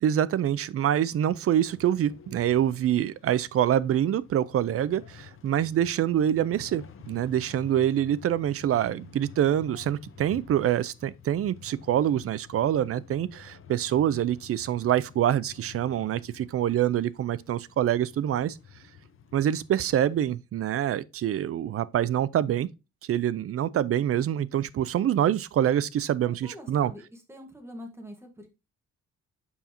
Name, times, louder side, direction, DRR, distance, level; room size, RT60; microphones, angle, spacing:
voice 1, 0.0-18.6 19.3-22.7 23.1-26.9, right 10 dB, 50° right, 0.5 m, -25 dB
sound 1, 1.7-20.3, left 7 dB, 45° left, 0.9 m, -50 dB
voice 2, 26.2-28.5, equal, 10° right, 1.6 m, -45 dB
7.1 x 5.3 x 2.9 m
cardioid pair, 130°, 30 cm